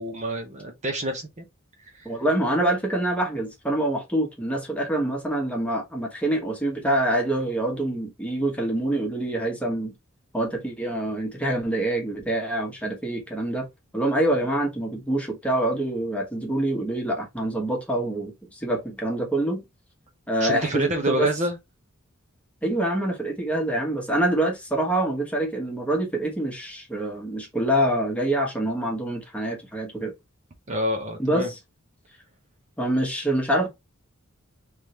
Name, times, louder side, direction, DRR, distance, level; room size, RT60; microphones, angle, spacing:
voice 1, 0.0-1.5 1.8-2.1 20.4-21.6 30.7-31.5, right 1 dB, 35° right, 0.7 m, -28 dB
voice 2, 2.0-9.9 10.3-13.7 13.9-19.6 20.3-21.3 22.6-30.1 31.2-31.5 32.8-33.7, right 1 dB, 5° left, 1.2 m, -25 dB
3.6 x 3.2 x 2.8 m
head